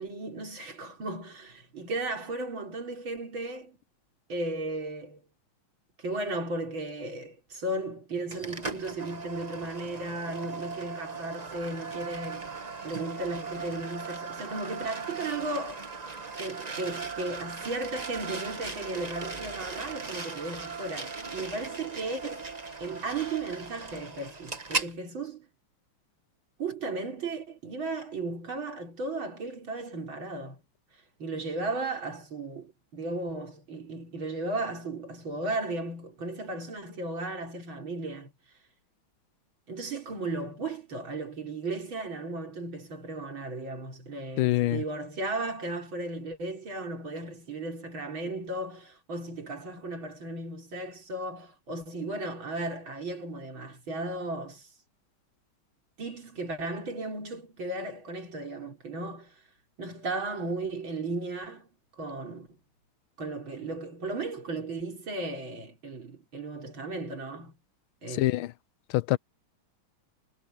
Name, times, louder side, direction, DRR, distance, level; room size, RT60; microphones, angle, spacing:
voice 1, 0.0-3.8 4.3-5.2 6.0-15.8 16.4-22.5 22.8-25.5 26.6-30.6 31.2-38.3 39.7-54.7 56.0-59.3 59.8-61.7 62.0-62.6 63.2-67.5 68.0-68.4, right 2 dB, 70° right, 5.1 m, -35 dB
sound 1, 8.3-24.9, right 4 dB, 25° right, 1.3 m, -38 dB
voice 2, 44.4-44.8 68.1-68.5 68.9-69.2, left 17 dB, 80° left, 1.4 m, -25 dB
omnidirectional pair, 2.3 m